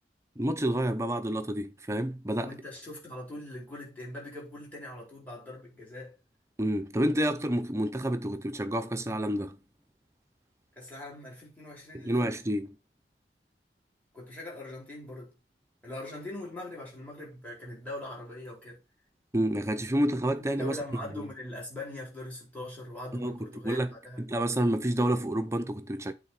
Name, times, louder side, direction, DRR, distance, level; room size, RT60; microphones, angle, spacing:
voice 1, 0.4-2.6 6.6-9.6 11.9-12.7 19.3-20.8 21.2-21.3 23.1-23.4 23.6-23.9 24.2-26.1, right 1 dB, 15° right, 0.5 m, -29 dB
voice 2, 2.4-6.1 10.8-12.3 14.1-15.3 15.8-18.8 20.4-24.2, left 1 dB, 10° left, 4.5 m, -42 dB
8.4 x 4.0 x 4.9 m
head